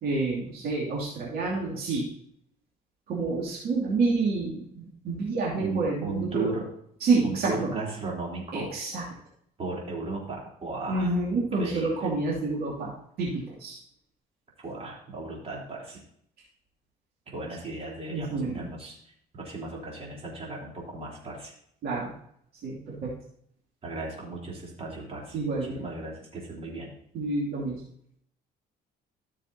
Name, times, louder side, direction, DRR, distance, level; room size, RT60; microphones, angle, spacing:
voice 1, 0.0-2.1 3.1-6.5 7.0-7.7 8.5-9.0 10.9-12.9 13.2-13.8 18.1-18.7 21.8-22.1 22.6-23.1 25.3-25.8 27.1-27.8, right 3 dB, 65° right, -4 dB, 2.7 m, -28 dB
voice 2, 5.5-6.7 7.2-8.8 9.6-12.1 14.6-16.0 17.3-21.5 23.8-26.9, right 3 dB, 35° right, -3 dB, 3.7 m, -36 dB
14.0 x 6.8 x 2.8 m, 0.69 s
cardioid pair, 110°, 17 cm